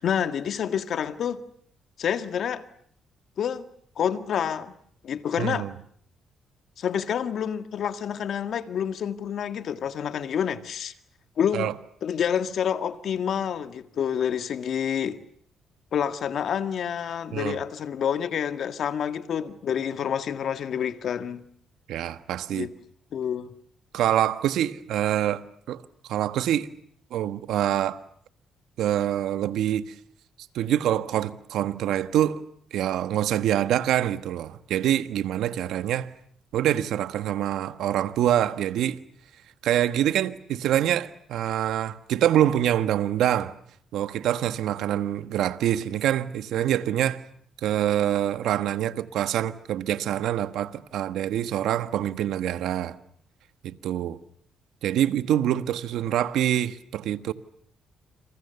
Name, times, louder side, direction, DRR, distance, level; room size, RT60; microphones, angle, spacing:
voice 1, 0.0-1.4 2.0-2.6 3.4-3.6 4.0-4.7 5.0-5.7 6.8-10.9 11.4-11.7 12.0-15.2 15.9-21.4 22.5-22.7 23.1-23.5, left 8 dB, 65° left, 1.7 m, -28 dB
voice 2, 5.4-5.7 11.5-11.7 17.3-17.6 21.9-22.7 23.9-25.4 25.7-25.8 26.1-26.7 27.1-28.0 28.8-29.9 30.5-32.4 32.7-36.1 36.5-39.0 39.6-43.5 43.9-47.2 47.6-52.9 53.6-54.2 54.8-57.3, right 11 dB, 80° right, 1.3 m, -25 dB
29.0 x 27.5 x 6.9 m
cardioid pair, 90°, 0 cm